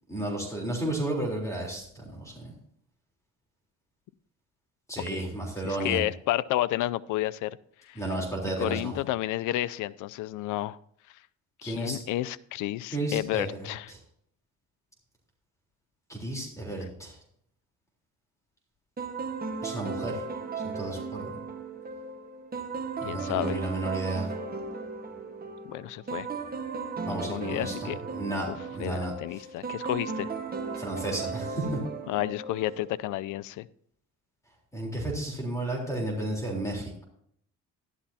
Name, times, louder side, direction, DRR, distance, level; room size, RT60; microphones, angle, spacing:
voice 1, 0.1-2.5 4.9-6.0 8.0-8.9 11.6-12.0 12.9-13.7 16.1-17.1 19.6-20.2 20.6-21.4 23.0-24.3 27.1-27.7 28.1-29.1 30.8-31.8 34.7-37.0, right 2 dB, 10° left, -1 dB, 3.6 m, -32 dB
voice 2, 5.6-7.6 7.8-8.0 8.6-10.8 11.6-13.9 23.0-23.6 25.6-26.3 27.1-28.0 28.5-28.6 28.8-30.3 32.1-33.7, left 15 dB, 90° left, 19 dB, 0.5 m, -31 dB
sound 1, 19.0-33.2, right 4 dB, 30° right, 1.4 m, -36 dB
12.5 x 11.5 x 2.8 m, 0.66 s
cardioid pair, 90°, 30 cm